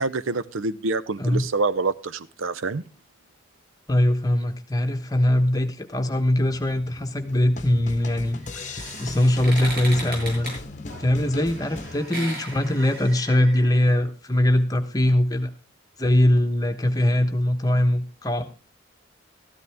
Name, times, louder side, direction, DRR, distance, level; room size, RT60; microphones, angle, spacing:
voice 1, 0.0-2.8, right 3 dB, 85° right, 16 dB, 0.6 m, -26 dB
voice 2, 3.9-10.5 11.0-15.5 16.0-18.4, left 1 dB, 20° left, 6 dB, 1.1 m, -22 dB
sound 1, 6.5-12.0, left 3 dB, 40° left, 0.9 m, -38 dB
sound 2, 8.2-13.8, right 1 dB, 50° right, 7.5 m, -37 dB
14.0 x 12.0 x 3.5 m, 0.32 s
head